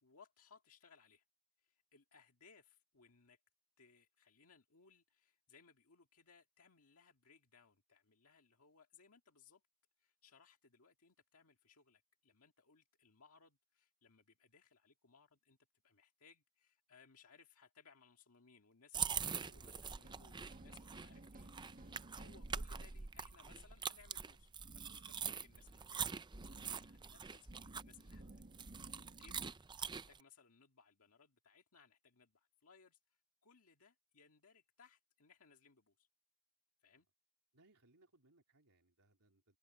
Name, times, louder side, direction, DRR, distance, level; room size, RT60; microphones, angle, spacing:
voice 1, 0.0-1.3 1.6-3.4 3.8-9.6 10.0-15.6 15.8-28.4 29.2-36.1 36.8-37.1, left 5 dB, 70° left, 2.0 m, -66 dB
sound 1, 18.9-30.2, right 6 dB, 20° right, 0.5 m, -44 dB
sound 2, 20.0-29.5, right 1 dB, 40° right, 1.6 m, -57 dB
voice 2, 20.0-20.5 37.5-39.6, right 2 dB, 80° right, 3.4 m, -71 dB
head